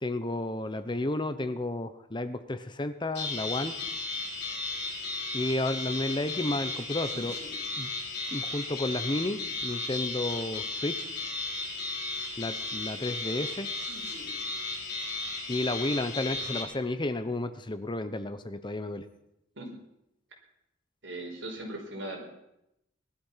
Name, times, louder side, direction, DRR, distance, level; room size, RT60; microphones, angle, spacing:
voice 1, 0.0-3.7 5.3-7.4 7.8-7.9 8.3-11.1 12.4-13.7 15.5-19.0, left 2 dB, 25° left, 11 dB, 0.8 m, -32 dB
sound 1, 3.1-16.6, left 3 dB, 55° left, 4.0 m, -35 dB
voice 2, 21.0-22.2, right 1 dB, 70° right, 0 dB, 5.2 m, -38 dB
19.5 x 12.5 x 5.7 m, 0.84 s
head